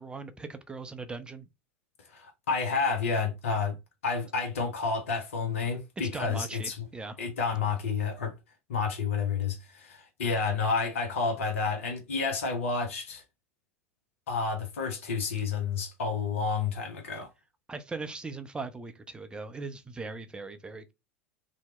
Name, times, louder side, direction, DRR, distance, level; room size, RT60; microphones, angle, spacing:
voice 1, 0.0-1.5 6.1-7.2 17.7-20.9, right 3 dB, 10° right, 0.4 m, -39 dB
voice 2, 2.1-3.8 4.0-6.9 7.2-8.3 8.7-13.2 14.3-17.3, left 5 dB, 70° left, 0.6 m, -30 dB
2.8 x 2.0 x 3.2 m
figure-of-eight pair, 85°, 8 cm